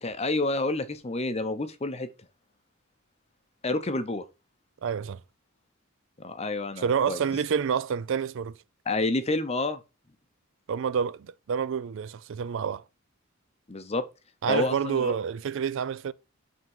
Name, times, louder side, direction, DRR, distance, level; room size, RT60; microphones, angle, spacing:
voice 1, 0.0-2.1 3.6-4.2 6.2-7.2 8.9-9.8 13.7-14.0 14.5-15.1, left 2 dB, 30° left, 0.7 m, -29 dB
voice 2, 4.8-5.2 6.8-8.6 10.7-12.8 14.4-16.1, right 7 dB, 60° right, 0.4 m, -28 dB
5.6 x 3.6 x 5.4 m
head